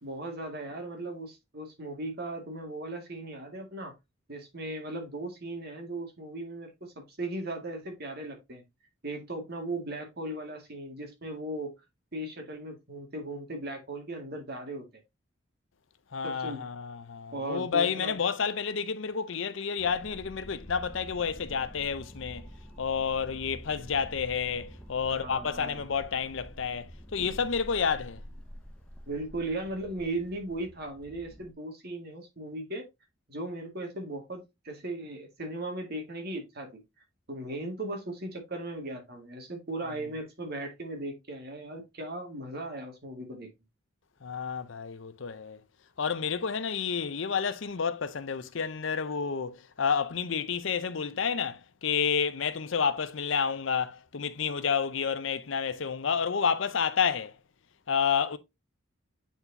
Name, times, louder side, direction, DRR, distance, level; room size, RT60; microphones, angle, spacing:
voice 1, 0.0-3.9 4.3-8.6 9.0-11.7 12.1-14.9 16.2-16.6 17.3-18.2 25.1-25.8 29.1-32.9 33.3-36.8 37.3-43.5, right 2 dB, 50° right, 2.0 m, -37 dB
voice 2, 16.1-22.5 22.8-28.2 44.2-45.6 46.0-57.4 57.9-58.4, left 6 dB, 70° left, 0.6 m, -30 dB
sound 1, 19.8-31.5, equal, 5° left, 0.7 m, -47 dB
8.9 x 4.3 x 2.7 m
head